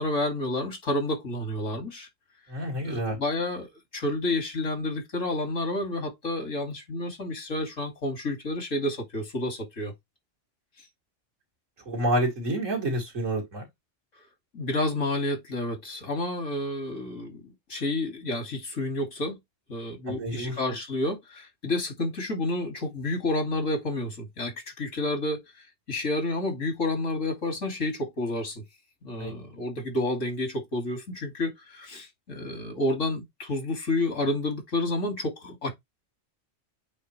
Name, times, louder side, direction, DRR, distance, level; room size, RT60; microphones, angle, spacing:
voice 1, 0.0-2.1 2.8-9.9 14.5-19.4 19.7-25.4 25.9-28.6 29.0-35.7, left 2 dB, 85° left, 2.9 m, -30 dB
voice 2, 2.5-3.2 11.9-13.6 20.1-20.6 29.2-29.3, right 1 dB, 85° right, 3.2 m, -28 dB
8.5 x 3.8 x 3.2 m
omnidirectional pair, 1.3 m